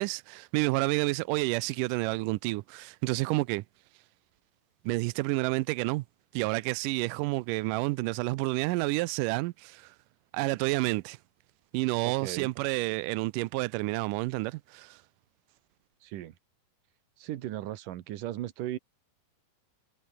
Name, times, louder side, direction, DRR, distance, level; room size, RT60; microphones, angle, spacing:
voice 1, 0.0-3.6 4.8-6.0 6.3-9.9 10.3-11.2 11.7-15.0, right 21 dB, 90° right, 1.9 m, -29 dB
voice 2, 12.0-12.5 16.0-16.3 17.2-18.8, right 13 dB, 65° right, 2.6 m, -37 dB
omnidirectional pair, 4.4 m